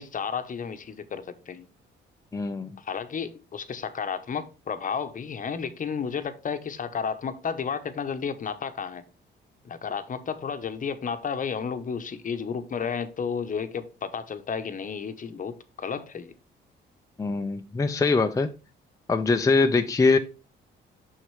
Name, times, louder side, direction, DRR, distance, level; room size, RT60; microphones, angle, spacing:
voice 1, 0.0-1.7 2.8-9.0 9.6-16.3, left 6 dB, 40° left, 0.9 m, -32 dB
voice 2, 2.3-2.8 17.2-18.5 19.1-20.2, left 4 dB, 15° left, 0.5 m, -23 dB
6.4 x 6.2 x 3.2 m
cardioid pair, 90°, 20 cm